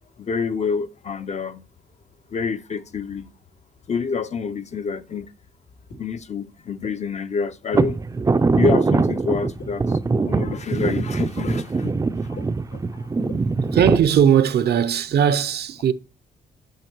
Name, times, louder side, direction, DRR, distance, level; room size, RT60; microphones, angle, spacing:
voice 1, 0.2-1.6 2.3-3.3 3.9-5.3 6.0-8.0 8.5-10.0 10.3-12.0 12.2-12.4 12.7-13.1, left 5 dB, 40° left, 0.6 m, -27 dB
sound 1, 5.9-6.0 6.8-6.9 7.7-7.8 8.7-8.8 9.6-9.7 10.5-10.6 11.4-11.5 12.4-12.5 13.3-13.4 14.2-14.3, left 4 dB, 85° left, 3.1 m, -36 dB
sound 2, 7.7-14.0, right 4 dB, 20° right, 0.4 m, -22 dB
voice 2, 13.7-15.9, right 8 dB, 65° right, 0.7 m, -18 dB
9.3 x 5.3 x 4.5 m
cardioid pair, 125°, 18 cm